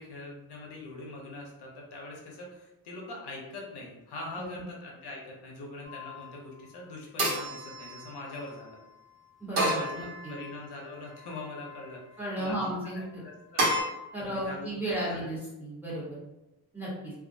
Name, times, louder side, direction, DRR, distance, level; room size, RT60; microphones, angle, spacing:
voice 1, 0.0-8.8 9.7-13.7 14.2-15.3, left 2 dB, 80° left, -1 dB, 0.7 m, -43 dB
sound 1, 5.9-6.4 7.2-8.6 9.6-10.7 11.2-11.9 13.6-13.8, right 1 dB, 70° right, 1.1 m, -31 dB
voice 2, 9.4-10.3 12.2-13.2 14.1-16.2 16.7-17.1, right 1 dB, 5° right, -8 dB, 0.8 m, -34 dB
2.3 x 2.1 x 2.5 m, 0.96 s
cardioid pair, 130°, 39 cm